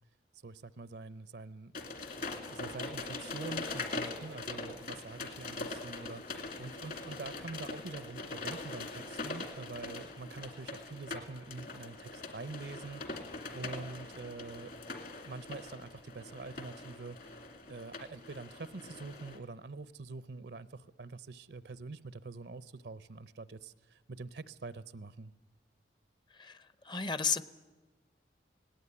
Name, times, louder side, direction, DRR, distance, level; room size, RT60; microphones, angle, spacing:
voice 1, 0.4-1.7 2.5-14.7 15.2-17.4 17.7-25.3, right 3 dB, 70° right, 16 dB, 0.7 m, -45 dB
sound 1, 1.7-19.4, left 3 dB, 55° left, 2.3 m, -42 dB
voice 2, 26.3-27.4, left 5 dB, 25° left, 15 dB, 0.7 m, -34 dB
18.0 x 18.0 x 9.7 m, 1.2 s
head